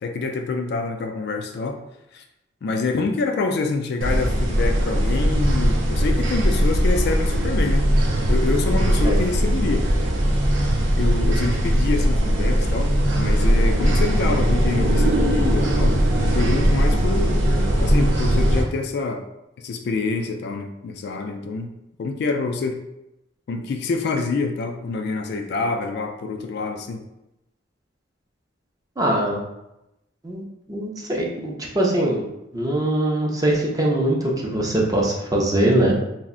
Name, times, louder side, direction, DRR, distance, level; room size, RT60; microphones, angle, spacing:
voice 1, 0.0-1.8 2.1-2.2 2.6-7.9 8.3-9.9 11.0-17.4 17.8-19.2 19.6-21.7 22.0-22.8 23.5-27.0, left 3 dB, 55° left, 5 dB, 0.3 m, -26 dB
sound 1, 4.0-18.6, equal, 70° right, 0.5 m, -19 dB
voice 2, 29.0-29.4 30.2-30.4 30.7-32.2 32.5-36.0, right 1 dB, 20° right, -2 dB, 0.5 m, -22 dB
2.5 x 2.0 x 3.6 m, 0.90 s
head